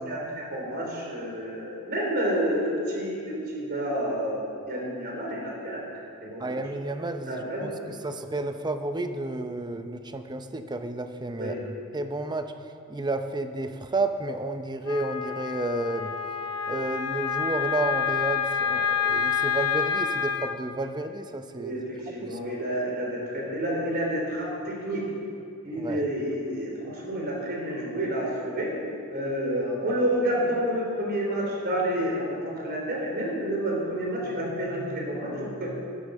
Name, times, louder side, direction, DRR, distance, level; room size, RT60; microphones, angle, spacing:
voice 1, 0.0-5.8 6.2-6.6 7.2-7.9 11.4-11.6 21.5-25.0 25.6-28.8 29.1-35.7, equal, 45° right, -2 dB, 3.7 m, -29 dB
voice 2, 6.4-12.5 12.9-16.1 16.7-21.8 22.2-22.4 25.8-26.0, right 2 dB, 20° right, 8 dB, 0.6 m, -31 dB
Wind instrument woodwind instrument, 14.9-20.6, left 7 dB, 80° left, 0.9 m, -28 dB
12.0 x 11.5 x 6.3 m, 2.5 s
head